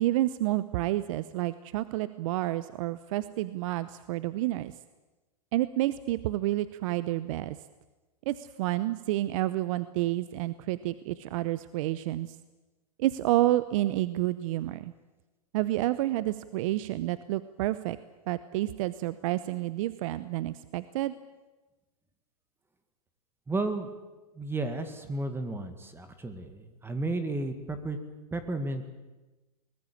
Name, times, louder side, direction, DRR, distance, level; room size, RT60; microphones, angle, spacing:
voice 1, 0.0-4.7 5.5-7.6 8.3-12.4 13.0-14.9 15.5-18.0 18.3-21.1, right 15 dB, 55° right, 15 dB, 0.9 m, -29 dB
voice 2, 23.5-23.9 24.4-28.0 28.3-28.9, right 2 dB, 10° right, 8 dB, 2.0 m, -33 dB
22.5 x 19.5 x 8.7 m, 1.2 s
hypercardioid pair, 120°, 20 cm